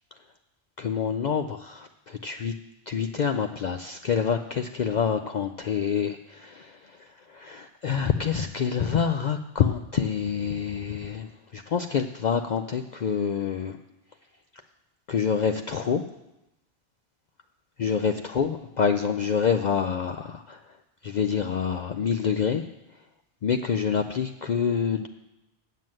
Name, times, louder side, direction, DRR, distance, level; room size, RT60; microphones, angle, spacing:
voice 1, 0.8-2.5 2.9-13.8 15.1-16.0 17.8-20.8 21.0-22.7 23.4-25.1, left 7 dB, 55° left, 6 dB, 0.5 m, -27 dB
9.2 x 7.5 x 7.6 m, 0.93 s
omnidirectional pair, 1.1 m